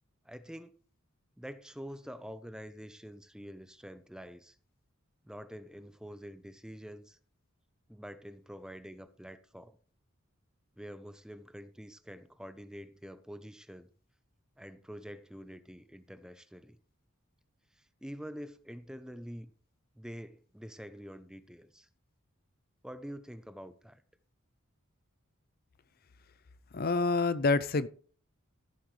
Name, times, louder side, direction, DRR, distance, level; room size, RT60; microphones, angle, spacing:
voice 1, 0.2-0.7 1.4-4.6 5.2-7.2 7.9-9.8 10.8-13.9 14.6-16.8 17.8-19.5 20.0-21.9 22.8-24.0, equal, 5° right, 0.6 m, -46 dB
voice 2, 26.7-27.9, left 3 dB, 45° left, 0.6 m, -27 dB
14.5 x 8.4 x 3.3 m
head